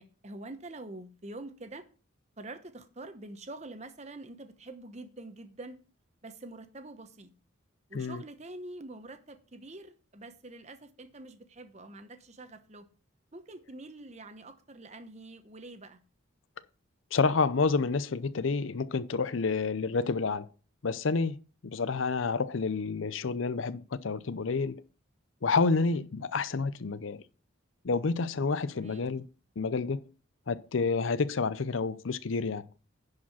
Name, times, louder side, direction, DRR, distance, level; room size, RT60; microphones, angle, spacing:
voice 1, 0.0-1.9 2.4-5.8 6.2-7.3 7.9-12.9 13.3-16.0 25.9-26.0 28.7-29.1, right 2 dB, 35° right, 0.9 m, -46 dB
voice 2, 17.1-20.5 20.8-21.4 21.6-24.8 25.4-27.2 27.8-29.2 29.6-30.0 30.5-32.7, left 4 dB, 70° left, 0.6 m, -29 dB
10.5 x 4.9 x 5.7 m
head